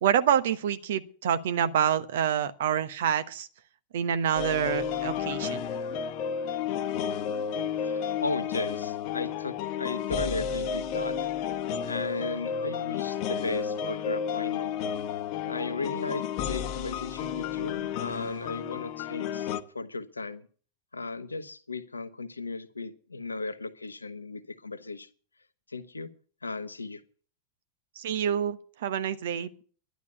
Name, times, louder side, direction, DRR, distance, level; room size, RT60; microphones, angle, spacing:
voice 1, 0.0-3.5 3.9-5.7 28.0-29.6, right 9 dB, 60° right, 1.1 m, -27 dB
sound 1, 4.4-19.6, left 8 dB, 45° left, 1.0 m, -32 dB
voice 2, 7.8-11.2 11.9-14.7 15.4-20.5 20.9-25.1 25.7-26.1 26.4-27.0, left 3 dB, 80° left, 1.0 m, -36 dB
11.5 x 11.0 x 6.9 m
figure-of-eight pair, 90°, 0 cm